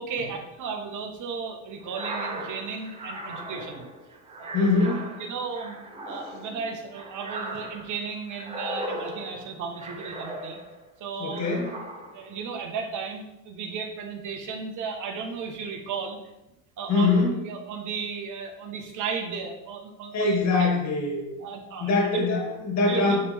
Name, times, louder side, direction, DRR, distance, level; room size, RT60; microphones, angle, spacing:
voice 1, 0.0-3.8 4.4-4.5 5.2-5.8 6.0-10.6 11.0-11.4 12.1-16.2 16.8-17.1 17.4-20.7 21.4-22.3 22.9-23.2, right 5 dB, 50° right, 3 dB, 1.4 m, -34 dB
sound 1, 1.8-10.9 11.3-12.3, right 1 dB, 15° right, 1.1 m, -38 dB
voice 2, 4.5-5.1 11.2-11.7 16.9-17.4 20.1-21.3 21.8-23.2, left 3 dB, 45° left, -2 dB, 2.2 m, -23 dB
9.6 x 3.5 x 3.5 m, 0.89 s
supercardioid pair, 105°, 39 cm